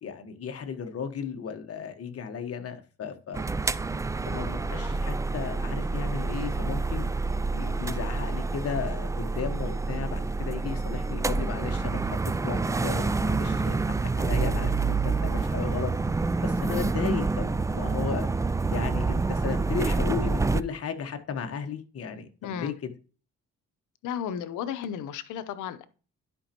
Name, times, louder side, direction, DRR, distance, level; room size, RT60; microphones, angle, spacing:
voice 1, 0.0-3.4 4.3-7.1 7.5-12.0 12.4-15.9 16.4-18.3 18.7-22.9, left 6 dB, 50° left, 1.4 m, -35 dB
sound 1, 3.3-20.6, right 3 dB, 10° right, 0.3 m, -28 dB
voice 2, 22.4-22.8 24.0-25.9, left 8 dB, 85° left, 0.8 m, -34 dB
11.0 x 5.3 x 2.9 m
cardioid pair, 90°, 30 cm